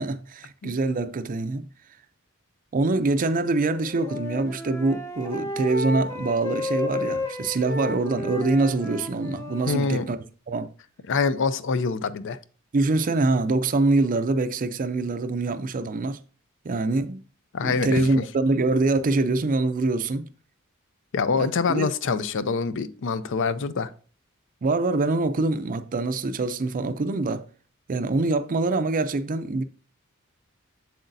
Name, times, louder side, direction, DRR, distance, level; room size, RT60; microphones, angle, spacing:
voice 1, 0.0-1.6 2.7-10.2 10.5-10.7 12.7-16.2 16.6-17.2 17.6-20.3 21.4-21.9 24.6-27.4 27.9-29.6, right 3 dB, 40° right, 0.4 m, -24 dB
Wind instrument woodwind instrument, 3.6-10.1, left 2 dB, 15° left, 1.1 m, -32 dB
voice 2, 9.7-10.1 11.1-12.4 17.5-18.2 21.1-23.9, left 4 dB, 60° left, 0.5 m, -25 dB
7.8 x 7.1 x 2.6 m
head